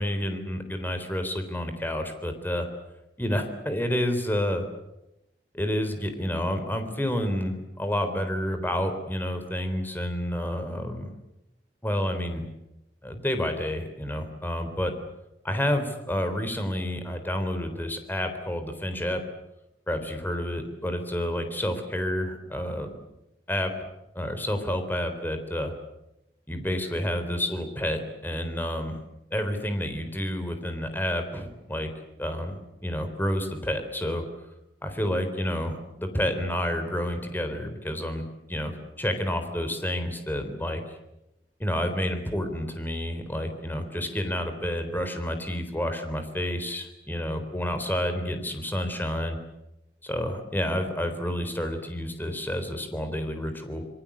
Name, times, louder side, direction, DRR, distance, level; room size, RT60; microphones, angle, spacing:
voice 1, 0.0-2.7 3.2-4.6 5.5-11.1 11.8-12.5 13.0-14.9 15.4-19.2 19.9-22.9 23.5-23.7 24.2-25.7 26.5-29.0 29.3-31.9 32.2-34.3 34.8-41.0 41.6-49.4 50.0-53.8, equal, 10° left, 7 dB, 3.8 m, -29 dB
26.5 x 23.0 x 8.6 m, 0.90 s
head